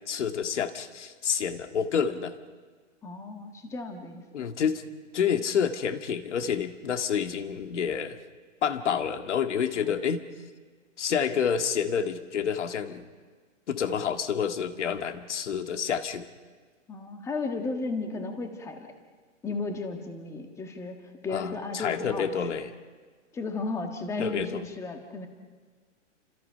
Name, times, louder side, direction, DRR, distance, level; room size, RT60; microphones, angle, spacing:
voice 1, 0.1-2.3 4.3-4.8 5.1-8.2 8.6-10.2 11.0-13.0 13.7-16.3 21.3-22.7 24.2-24.6, left 7 dB, 65° left, 7 dB, 2.0 m, -28 dB
voice 2, 3.0-4.5 9.8-10.0 16.9-18.9 19.4-20.9 21.2-22.6 23.3-25.3, left 3 dB, 5° left, 5 dB, 1.5 m, -34 dB
30.0 x 26.0 x 5.7 m, 1.5 s
hypercardioid pair, 155°, 38 cm